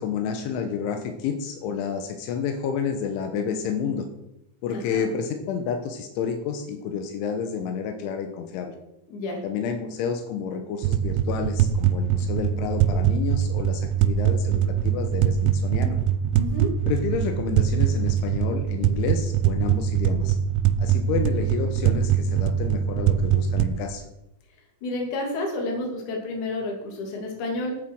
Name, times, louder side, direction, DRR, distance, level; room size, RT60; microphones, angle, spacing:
voice 1, 0.0-4.1 4.6-8.8 9.4-16.0 16.9-20.4 20.8-24.0, left 7 dB, 85° left, 6 dB, 3.5 m, -30 dB
voice 2, 4.7-5.1 9.1-9.4 16.3-16.7 24.8-27.8, left 1 dB, 45° left, 1 dB, 3.6 m, -30 dB
sound 1, 10.8-23.8, right 9 dB, 90° right, 3.1 m, -23 dB
11.5 x 9.3 x 6.2 m, 0.89 s
omnidirectional pair, 5.4 m